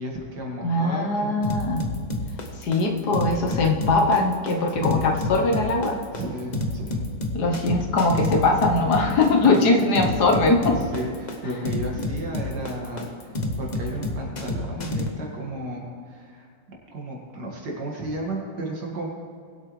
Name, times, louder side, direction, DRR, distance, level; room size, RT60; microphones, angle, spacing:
voice 1, 0.0-1.3 4.7-5.0 6.1-7.0 9.4-9.8 10.7-16.5 16.9-19.1, right 1 dB, 65° right, -2 dB, 2.5 m, -33 dB
voice 2, 0.6-1.8 2.6-6.0 7.3-10.8, left 2 dB, 65° left, 2 dB, 1.5 m, -21 dB
sound 1, 1.4-15.1, left 2 dB, 30° left, 0.8 m, -29 dB
21.5 x 8.3 x 3.2 m, 2.2 s
omnidirectional pair, 2.0 m